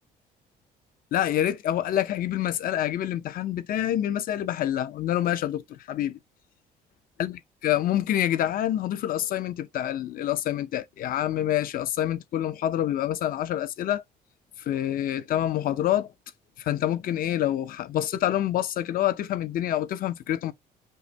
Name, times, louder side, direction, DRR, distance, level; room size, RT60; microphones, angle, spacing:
voice 1, 1.1-6.2 7.2-14.0 14.7-16.1 16.6-20.5, left 12 dB, 60° left, 0.6 m, -27 dB
5.4 x 2.1 x 3.3 m
cardioid pair, 110°, 17 cm